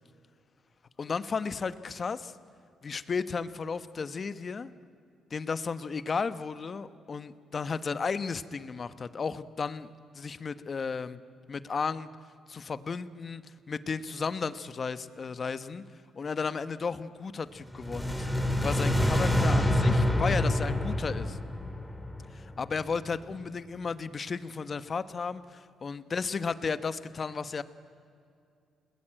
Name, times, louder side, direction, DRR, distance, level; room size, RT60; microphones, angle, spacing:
voice 1, 1.0-2.3 2.8-4.7 5.3-9.9 10.1-11.2 11.5-12.1 12.5-13.4 13.7-15.8 16.1-21.4 22.3-27.6, left 5 dB, 40° left, 13 dB, 1.1 m, -34 dB
sound 1, 17.7-22.8, left 1 dB, 5° left, 2.9 m, -27 dB
29.5 x 20.0 x 8.8 m, 2.4 s
cardioid pair, 90°, 0 cm